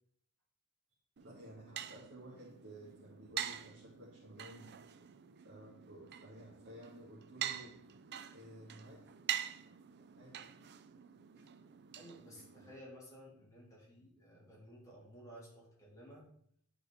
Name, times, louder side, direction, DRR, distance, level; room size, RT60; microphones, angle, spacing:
sound 1, 1.2-12.8, right 10 dB, 50° right, 0.4 m, -45 dB
voice 1, 1.2-4.7 5.4-7.8 8.2-9.1 10.0-10.4, right 1 dB, 70° right, -6 dB, 1.9 m, -54 dB
voice 2, 12.0-16.2, equal, 15° left, -5 dB, 3.2 m, -55 dB
10.5 x 4.6 x 4.3 m, 0.67 s
head